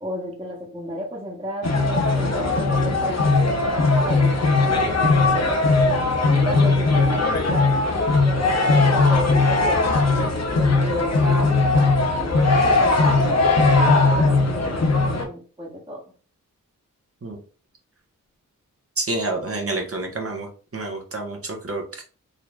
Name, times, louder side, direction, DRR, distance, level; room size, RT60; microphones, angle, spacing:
voice 1, 0.0-6.0 6.4-9.8 10.6-16.0, equal, 15° right, -4 dB, 1.3 m, -33 dB
sound 1, 1.6-15.2, left 3 dB, 50° left, 0.9 m, -19 dB
voice 2, 19.0-22.0, right 2 dB, 45° right, 1 dB, 1.2 m, -28 dB
3.8 x 3.0 x 2.4 m, 0.38 s
cardioid pair, 45°, 32 cm